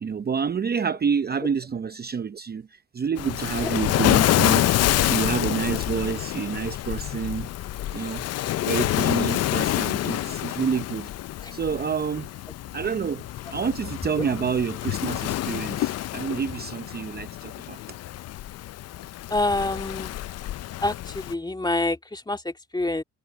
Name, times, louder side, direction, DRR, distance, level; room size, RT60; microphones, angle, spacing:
voice 1, 0.0-7.5 7.9-8.2 8.7-11.1 11.5-12.3 12.7-13.2 13.5-17.8, right 6 dB, 30° right, 0.7 m, -28 dB
Waves surf, 3.2-21.3, left 14 dB, 55° left, 0.5 m, -27 dB
voice 2, 19.3-20.1 20.8-23.0, left 2 dB, 15° left, 2.5 m, -27 dB
cardioid pair, 90°, 30 cm